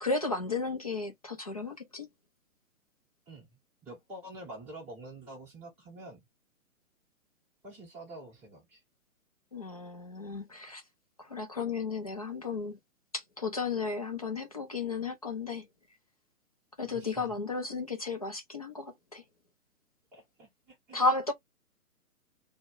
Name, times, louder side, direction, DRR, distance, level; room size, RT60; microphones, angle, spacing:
voice 1, 0.0-2.1 9.5-10.8 11.2-12.8 13.1-15.7 16.8-19.2 20.9-21.3, left 3 dB, 30° left, 0.4 m, -33 dB
voice 2, 3.8-6.2 7.6-8.8 16.9-17.4 20.1-21.0, right 1 dB, 5° right, 0.8 m, -47 dB
2.2 x 2.0 x 3.7 m
figure-of-eight pair, 130°, 44 cm